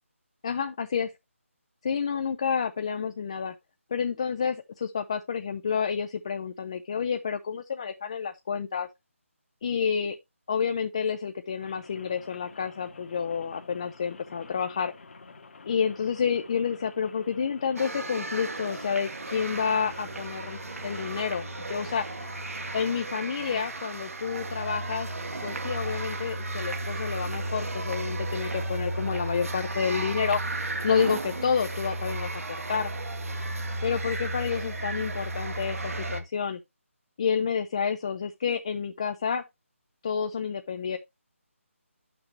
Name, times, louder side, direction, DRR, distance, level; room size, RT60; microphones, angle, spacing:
voice 1, 0.4-1.1 1.8-3.5 3.9-8.9 9.6-10.2 10.5-14.9 15.7-22.1 22.7-25.1 25.4-30.4 30.8-32.9 33.8-36.6 37.2-39.4 40.0-41.0, left 6 dB, 25° left, 0.3 m, -29 dB
Rain, 11.6-23.1, left 4 dB, 55° left, 1.4 m, -50 dB
sound 1, 17.8-36.2, right 2 dB, 85° right, 1.5 m, -34 dB
9.4 x 5.9 x 3.1 m
figure-of-eight pair, 160°, 8 cm